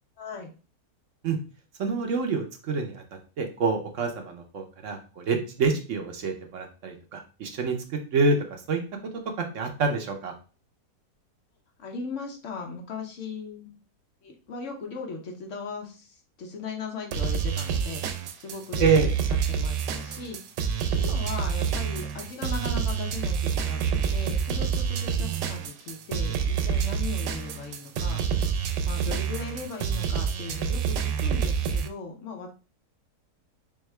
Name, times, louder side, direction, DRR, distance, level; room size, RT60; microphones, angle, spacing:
voice 1, 0.2-0.5 11.8-13.7 14.2-18.9 19.5-28.2 28.9-32.5, left 4 dB, 55° left, 2 dB, 1.0 m, -38 dB
voice 2, 1.8-8.8 9.4-10.3 18.8-19.1 25.2-25.5, right 4 dB, 55° right, 4 dB, 0.9 m, -27 dB
sound 1, 17.1-31.9, right 7 dB, 85° right, 1.2 m, -27 dB
3.6 x 3.5 x 3.2 m, 0.35 s
omnidirectional pair, 1.8 m